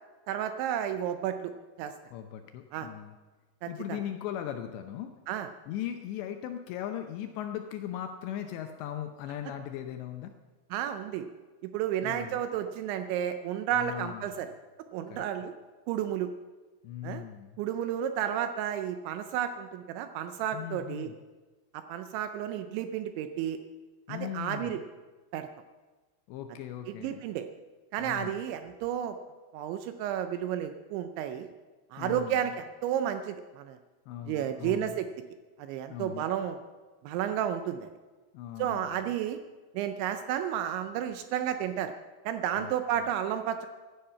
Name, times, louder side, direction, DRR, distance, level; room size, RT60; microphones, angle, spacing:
voice 1, 0.3-1.5 1.8-1.9 2.7-2.9 3.6-4.0 5.3-5.5 10.7-11.3 11.6-14.5 14.9-15.5 15.9-16.3 17.0-17.2 17.6-21.1 21.7-23.6 24.1-24.8 25.3-25.5 26.9-27.5 27.9-29.2 29.5-31.5 31.9-33.8 34.3-35.1 35.6-36.6 37.0-37.9 38.6-39.4 39.7-41.9 42.3-43.7, right 10 dB, 80° right, 9 dB, 2.8 m, -32 dB
voice 2, 2.1-3.1 3.7-5.1 5.7-10.3 12.0-12.4 13.7-14.5 15.1-15.3 16.8-17.6 20.5-21.2 24.1-24.8 26.3-27.2 28.0-28.4 32.0-32.5 34.1-35.0 35.9-36.3 38.3-39.1 42.6-42.7, left 10 dB, 80° left, 6 dB, 2.7 m, -38 dB
16.0 x 11.5 x 5.7 m, 1.3 s
omnidirectional pair, 5.8 m